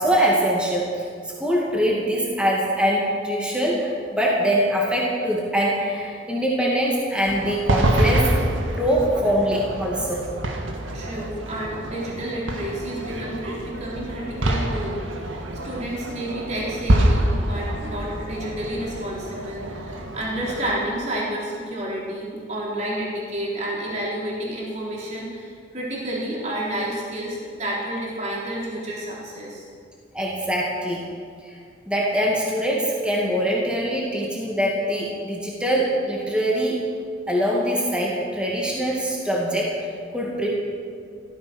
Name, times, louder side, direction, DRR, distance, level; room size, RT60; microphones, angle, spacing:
voice 1, 0.0-8.3 8.8-10.2 30.1-31.1 31.4-31.5 31.9-36.8 37.3-39.7 40.1-40.5, equal, 5° right, -4 dB, 2.4 m, -23 dB
sound 1, 7.3-20.7, right 1 dB, 90° right, 1.8 m, -26 dB
voice 2, 10.9-29.7, right 1 dB, 35° right, -4 dB, 3.9 m, -30 dB
16.0 x 14.0 x 6.4 m, 2.2 s
head